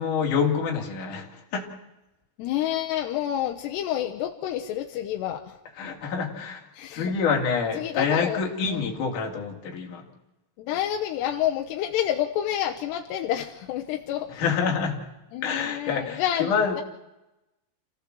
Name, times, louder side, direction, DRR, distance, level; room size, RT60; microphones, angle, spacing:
voice 1, 0.0-1.6 5.8-6.6 6.9-10.0 14.4-15.0 15.4-16.7, left 6 dB, 50° left, 1 dB, 3.9 m, -26 dB
voice 2, 2.4-5.6 6.7-7.1 7.8-8.4 8.7-8.9 10.6-14.5 15.3-16.8, left 11 dB, 80° left, 3 dB, 3.1 m, -29 dB
27.0 x 16.0 x 7.7 m, 0.97 s
omnidirectional pair, 4.8 m